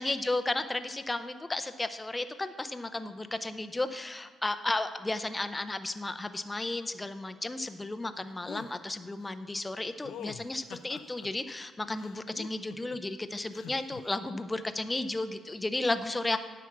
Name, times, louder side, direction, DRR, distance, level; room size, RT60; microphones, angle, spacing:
voice 1, 0.0-16.4, left 2 dB, 15° left, 10 dB, 0.5 m, -33 dB
sound 1, 8.5-8.7 10.0-11.3 12.0-13.0 13.5-14.0, left 9 dB, 85° left, 0.4 m, -44 dB
9.5 x 5.8 x 6.1 m, 1.4 s
cardioid pair, 90°, 0 cm